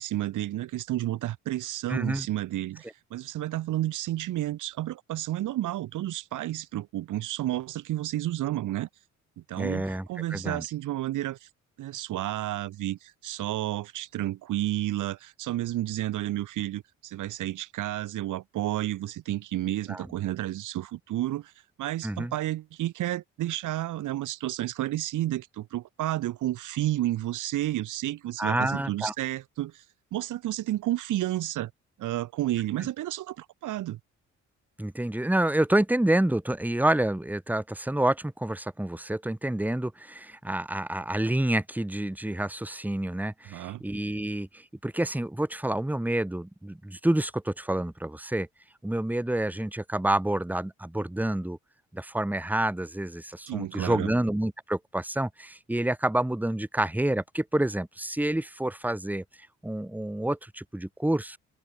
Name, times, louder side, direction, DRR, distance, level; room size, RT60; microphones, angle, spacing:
voice 1, 0.0-8.9 9.4-11.5 11.8-21.5 21.8-29.8 30.1-31.7 32.0-34.0 43.4-43.8 53.5-54.1, right 14 dB, 80° right, 2.9 m, -31 dB
voice 2, 1.9-2.3 9.6-10.6 19.9-20.1 22.0-22.3 28.4-29.1 34.8-48.5 48.8-51.6 51.9-59.2 59.6-61.4, right 1 dB, 5° right, 2.2 m, -28 dB
cardioid pair, 90°, 30 cm